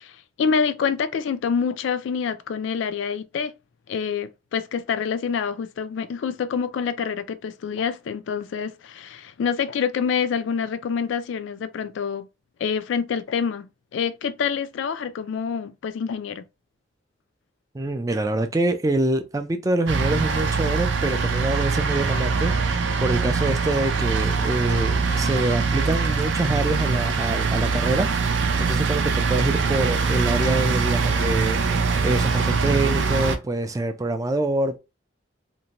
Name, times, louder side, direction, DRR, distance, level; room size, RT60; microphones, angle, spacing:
voice 1, 0.0-3.5 3.9-12.3 12.6-16.4, left 6 dB, 80° left, 0.3 m, -27 dB
voice 2, 17.7-28.1 28.3-34.8, right 2 dB, 20° right, 0.3 m, -25 dB
sound 1, 19.9-33.4, right 4 dB, 75° right, 0.5 m, -23 dB
2.6 x 2.1 x 2.9 m
head